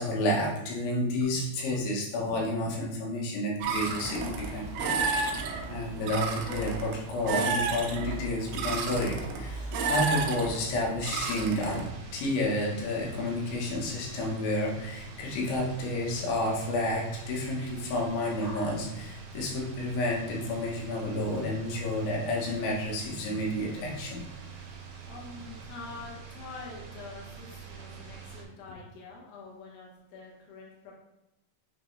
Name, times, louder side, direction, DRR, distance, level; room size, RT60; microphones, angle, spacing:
voice 1, 0.0-5.2 5.7-11.8 12.1-24.2, left 1 dB, 80° left, -3 dB, 3.5 m, -30 dB
sound 1, 3.6-11.9, right 4 dB, 90° right, 3.0 m, -32 dB
sound 2, 11.6-28.4, right 5 dB, 75° right, 2.2 m, -45 dB
voice 2, 25.1-30.9, left 4 dB, 65° left, -3 dB, 2.8 m, -46 dB
8.9 x 3.3 x 3.2 m, 0.91 s
omnidirectional pair, 5.2 m